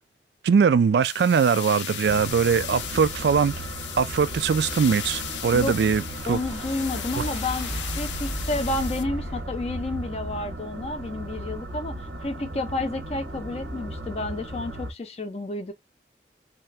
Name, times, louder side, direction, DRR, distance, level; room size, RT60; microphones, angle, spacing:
voice 1, 0.4-3.5 4.0-6.0 6.3-6.4 7.2-7.3, right 6 dB, 70° right, 0.3 m, -21 dB
sound 1, 1.0-9.0, left 10 dB, 90° left, 0.5 m, -36 dB
sound 2, 2.0-14.9, right 1 dB, 85° right, 1.0 m, -36 dB
sound 3, 5.6-11.9, equal, 10° right, 0.6 m, -38 dB
voice 2, 6.3-15.7, left 2 dB, 35° left, 0.5 m, -31 dB
3.2 x 2.8 x 3.3 m
head